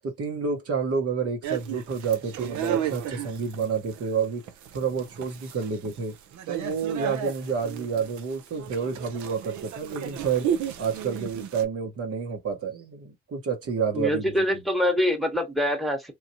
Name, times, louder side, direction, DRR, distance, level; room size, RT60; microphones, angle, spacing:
voice 1, 0.0-4.4 4.7-6.2 6.5-10.5 10.8-14.6, right 6 dB, 55° right, 0.9 m, -29 dB
sound 1, 1.4-11.7, right 9 dB, 70° right, 0.6 m, -34 dB
voice 2, 13.9-16.1, left 1 dB, ahead, 1.1 m, -25 dB
3.1 x 2.3 x 2.6 m
supercardioid pair, 60°, 30 cm